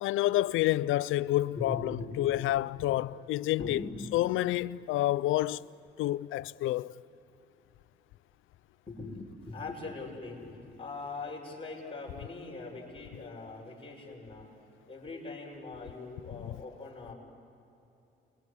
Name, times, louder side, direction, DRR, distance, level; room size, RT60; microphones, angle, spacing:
voice 1, 0.0-3.8 4.1-5.7 6.0-6.9 16.3-16.5, left 15 dB, 85° left, 0.5 m, -29 dB
voice 2, 1.5-2.4 3.6-4.0 8.9-14.5 14.9-17.1, left 3 dB, 25° left, 6.6 m, -41 dB
29.0 x 22.5 x 8.3 m
cardioid pair, 90°, 20 cm